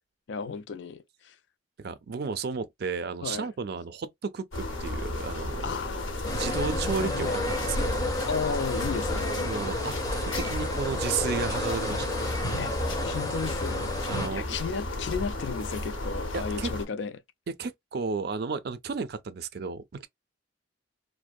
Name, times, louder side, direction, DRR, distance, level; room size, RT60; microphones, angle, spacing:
voice 1, 0.3-1.4 3.2-3.5 5.6-6.1 6.5-7.4 8.3-9.3 12.6-13.9 14.3-17.2, left 5 dB, 60° left, 0.4 m, -34 dB
voice 2, 1.8-5.7 6.3-8.1 9.4-12.5 14.1-14.5 16.3-16.7 17.5-20.1, right 5 dB, 50° right, 0.4 m, -33 dB
sound 1, 4.5-16.9, left 2 dB, 80° left, 0.9 m, -33 dB
sound 2, 6.2-14.3, left 1 dB, 20° left, 0.6 m, -32 dB
2.6 x 2.1 x 2.3 m
head